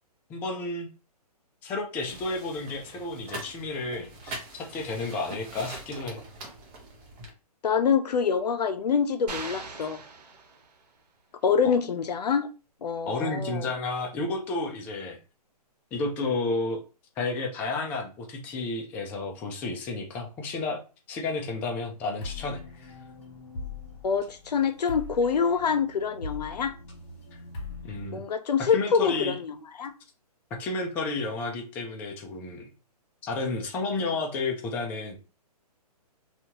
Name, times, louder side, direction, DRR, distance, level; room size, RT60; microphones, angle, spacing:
voice 1, 0.3-0.9 1.6-6.2 13.1-15.2 15.9-16.8 17.2-20.8 21.1-22.6 27.8-28.2 28.6-29.3 30.5-32.7 33.2-35.2, left 3 dB, 10° left, 0.3 m, -31 dB
sound 1, 2.1-7.3, right 2 dB, 20° right, 0.7 m, -43 dB
voice 2, 7.6-10.0 11.4-12.5 12.8-13.7 24.0-26.7 28.1-29.9, left 6 dB, 85° left, 0.5 m, -26 dB
sound 2, 9.3-11.0, right 4 dB, 90° right, 0.9 m, -40 dB
sound 3, 22.2-28.1, left 3 dB, 45° left, 1.5 m, -41 dB
2.7 x 2.3 x 2.9 m
hypercardioid pair, 145°, 20 cm